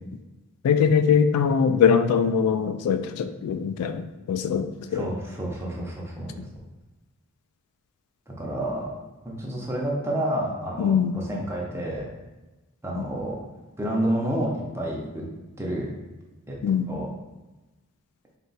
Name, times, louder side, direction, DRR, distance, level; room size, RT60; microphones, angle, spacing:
voice 1, 0.6-5.1 10.8-11.1 16.6-16.9, left 6 dB, 85° left, 13 dB, 0.3 m, -22 dB
voice 2, 4.9-6.4 8.3-8.9 9.2-12.0 12.8-13.4 13.8-15.3 15.6-15.9 16.5-16.6 16.9-17.1, right 1 dB, 10° right, -3 dB, 0.6 m, -29 dB
3.9 x 2.3 x 4.0 m, 1.1 s
head